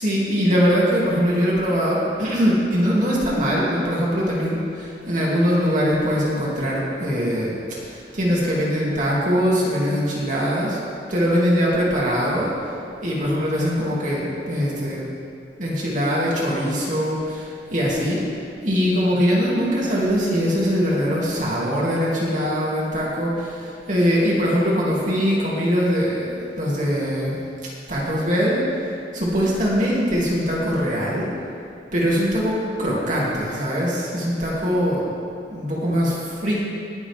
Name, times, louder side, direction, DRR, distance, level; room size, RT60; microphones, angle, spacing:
voice 1, 0.0-10.8 11.1-12.5 13.0-15.0 15.6-18.2 18.6-27.4 27.9-28.6 29.1-31.3 31.9-35.1 35.5-36.2 36.4-36.5, equal, 45° right, -6 dB, 2.6 m, -22 dB
20.0 x 7.1 x 3.6 m, 2.5 s
head